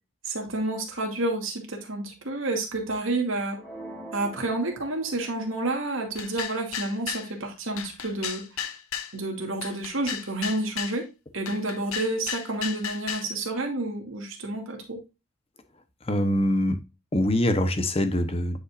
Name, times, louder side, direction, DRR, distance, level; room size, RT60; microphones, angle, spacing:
voice 1, 0.3-3.6 4.1-8.4 9.1-11.1 11.3-15.0, right 2 dB, 70° right, 2.4 m, -29 dB
sound 1, 3.6-5.6, right 1 dB, 5° left, 2.5 m, -43 dB
sound 2, 6.2-7.3 7.8-9.1 9.6-11.0 11.5-13.3, left 9 dB, 80° left, 0.9 m, -34 dB
voice 2, 16.1-16.8 17.1-18.6, left 1 dB, 25° left, 0.9 m, -23 dB
9.8 x 5.4 x 2.5 m
head